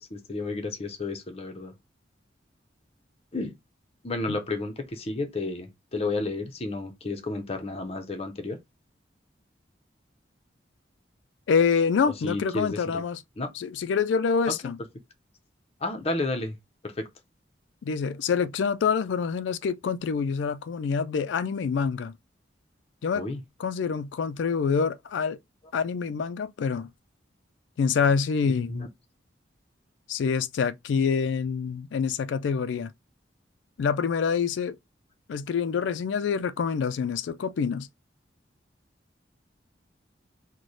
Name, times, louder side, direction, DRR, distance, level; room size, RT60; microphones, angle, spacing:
voice 1, 0.0-1.7 3.3-3.5 4.0-8.6 12.1-13.0 13.4-13.5 15.8-16.6 16.8-17.1 23.1-23.4 28.4-28.9, left 2 dB, 35° left, 0.6 m, -32 dB
voice 2, 11.5-13.2 13.6-14.8 17.8-22.1 23.0-23.2 23.6-25.4 25.7-26.9 27.8-28.7 30.1-32.9 33.8-34.8 35.3-37.9, left 6 dB, 80° left, 0.3 m, -26 dB
3.1 x 2.2 x 3.9 m
head